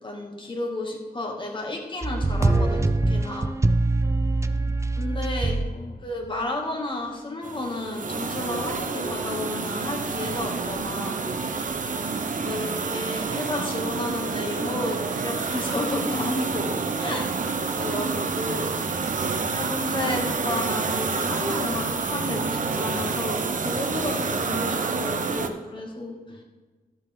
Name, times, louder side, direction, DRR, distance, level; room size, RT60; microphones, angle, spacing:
voice 1, 0.0-3.5 5.0-5.6 6.0-11.2 12.4-17.3 17.7-18.7 19.2-26.2, left 2 dB, 30° left, 0 dB, 2.1 m, -32 dB
sound 1, 2.0-5.7 6.3-6.4, right 2 dB, 20° right, 0.4 m, -23 dB
voice 2, 4.5-4.8 5.4-6.0 12.3-12.9 17.8-18.1 26.3-26.4, left 2 dB, 50° left, 5 dB, 1.2 m, -46 dB
sound 2, 7.4-25.5, right 4 dB, 55° right, 0.8 m, -28 dB
12.5 x 7.8 x 3.6 m, 1.3 s
wide cardioid pair, 125°, 16 cm